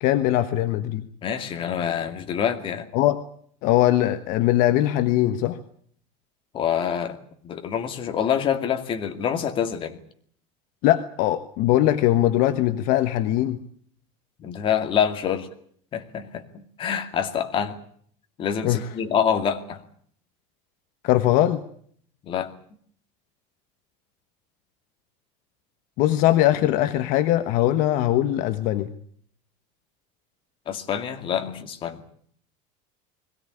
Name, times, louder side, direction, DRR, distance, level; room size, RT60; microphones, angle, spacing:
voice 1, 0.0-1.1 2.9-3.2 3.6-5.6 10.8-13.6 18.6-18.8 21.0-21.6 26.0-28.9, left 13 dB, 55° left, 9 dB, 1.3 m, -21 dB
voice 2, 1.2-2.9 6.5-7.2 7.4-10.0 14.4-15.5 15.9-17.8 18.4-19.8 22.2-22.5 30.7-32.0, left 8 dB, 30° left, 6 dB, 2.4 m, -26 dB
22.0 x 17.0 x 10.0 m, 0.62 s
cardioid pair, 155°, 17 cm